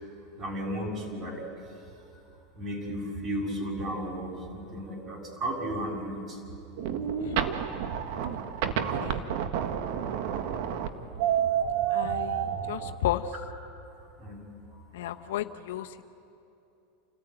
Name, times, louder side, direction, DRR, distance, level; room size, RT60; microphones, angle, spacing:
voice 1, 0.4-1.4 2.6-6.4 8.1-8.3 11.8-12.2 14.2-14.4 14.7-15.2, right 1 dB, 35° right, 0 dB, 7.1 m, -35 dB
sound 1, 6.8-13.0, right 9 dB, 65° right, 1.5 m, -29 dB
voice 2, 11.9-13.2 14.9-16.0, left 14 dB, 80° left, 8 dB, 1.0 m, -33 dB
29.5 x 14.5 x 9.0 m, 2.8 s
supercardioid pair, 115°, 0 cm